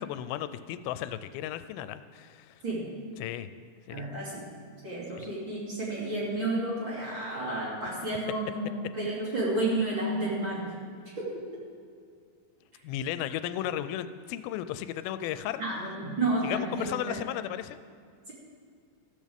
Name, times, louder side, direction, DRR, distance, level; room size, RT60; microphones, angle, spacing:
voice 1, 0.1-2.6 3.2-3.5 3.9-4.1 5.2-5.3 12.8-15.6 16.4-17.8, left 12 dB, 85° left, 12 dB, 2.4 m, -35 dB
voice 2, 3.9-4.4 4.8-10.7 11.2-11.3 15.6-17.2, right 2 dB, 35° right, -6 dB, 3.2 m, -31 dB
14.5 x 14.0 x 3.6 m, 2.2 s
omnidirectional pair, 4.2 m